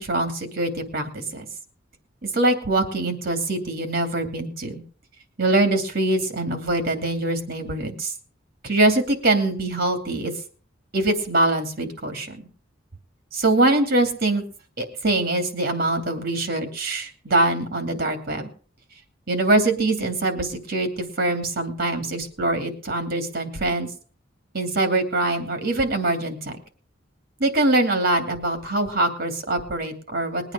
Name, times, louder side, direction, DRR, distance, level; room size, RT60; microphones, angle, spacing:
voice 1, 0.0-1.5 2.3-4.8 5.4-8.1 8.6-10.3 10.9-12.5 13.3-14.4 14.8-18.5 19.3-23.9 24.5-26.5 27.4-30.5, right 2 dB, 55° right, 7 dB, 2.7 m, -23 dB
20.5 x 8.9 x 5.0 m, 0.42 s
head